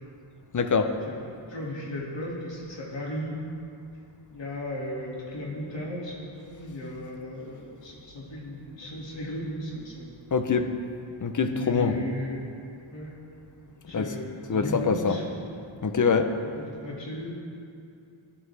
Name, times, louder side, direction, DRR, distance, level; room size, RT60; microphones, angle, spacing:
voice 1, 0.5-0.9 10.3-10.7 11.2-12.0 13.9-14.1 14.5-15.2 15.8-16.3, left 5 dB, 40° left, 8 dB, 0.7 m, -24 dB
voice 2, 1.0-3.3 4.3-10.1 11.4-12.4 12.9-13.1 13.6-15.2 16.4-17.3, left 1 dB, 60° left, -4 dB, 2.2 m, -36 dB
14.5 x 10.0 x 3.3 m, 2.5 s
wide cardioid pair, 105°, 49 cm